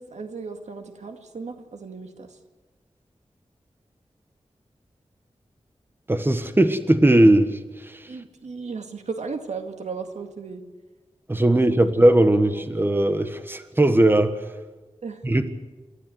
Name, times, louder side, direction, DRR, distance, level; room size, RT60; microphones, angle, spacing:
voice 1, 0.0-2.4 8.1-10.6 11.5-11.9 12.5-12.6 15.0-15.2, right 4 dB, 90° right, 6 dB, 2.1 m, -35 dB
voice 2, 6.1-8.0 11.3-14.3 15.2-15.5, right 1 dB, 20° right, 9 dB, 1.4 m, -19 dB
28.0 x 13.5 x 7.9 m, 1.3 s
wide cardioid pair, 95°, 11 cm